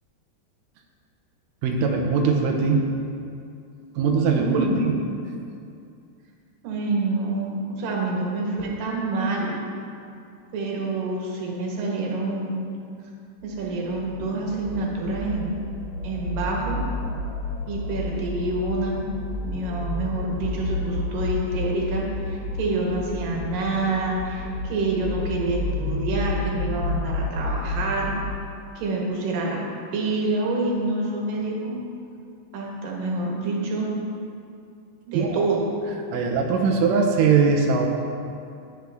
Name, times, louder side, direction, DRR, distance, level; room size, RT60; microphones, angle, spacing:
voice 1, 1.6-2.8 4.0-5.0 35.1-35.5 36.1-37.9, right 5 dB, 80° right, 1 dB, 1.9 m, -21 dB
voice 2, 4.4-4.8 6.6-9.6 10.5-12.5 13.4-15.5 16.0-16.8 17.7-19.1 19.4-28.1 28.8-29.7 29.9-31.8 32.5-33.9 35.1-35.8, right 2 dB, 65° right, -2 dB, 2.8 m, -27 dB
sound 1, 13.5-28.3, left 2 dB, 65° left, 2.4 m, -31 dB
17.0 x 6.3 x 3.5 m, 2.5 s
omnidirectional pair, 4.7 m